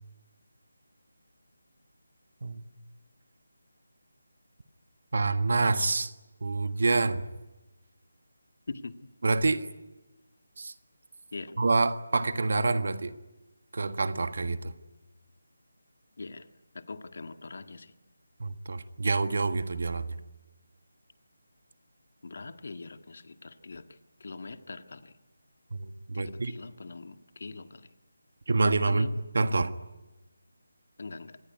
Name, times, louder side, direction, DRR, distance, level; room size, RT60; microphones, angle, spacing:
voice 1, 5.1-6.1 6.4-7.2 9.2-9.7 10.6-10.7 11.6-13.1 13.7-14.7 18.4-20.1 25.7-26.5 28.5-29.1 29.3-29.7, right 3 dB, 60° right, 10 dB, 1.6 m, -27 dB
voice 2, 11.3-11.6 16.2-16.5 16.7-17.9 22.2-23.8 24.2-25.2 26.1-27.9 28.9-29.1 31.0-31.4, left 3 dB, 55° left, 8 dB, 1.7 m, -42 dB
25.5 x 20.5 x 9.6 m, 1.1 s
figure-of-eight pair, 160°, 0 cm